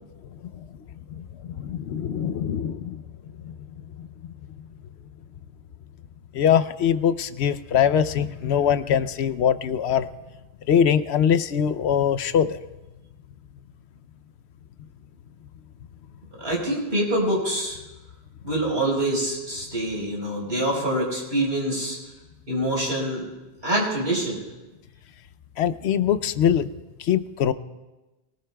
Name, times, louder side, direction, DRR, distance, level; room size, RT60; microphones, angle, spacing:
voice 1, 1.2-3.0 3.4-3.5 4.0-4.1 6.3-10.1 10.7-12.6 25.6-26.7 27.0-27.5, left 8 dB, 90° left, 13 dB, 0.9 m, -22 dB
voice 2, 16.4-17.8 18.4-22.0 22.5-23.2 23.6-24.4, right 1 dB, 70° right, -4 dB, 5.1 m, -25 dB
22.5 x 19.5 x 2.3 m, 1.1 s
omnidirectional pair, 1.1 m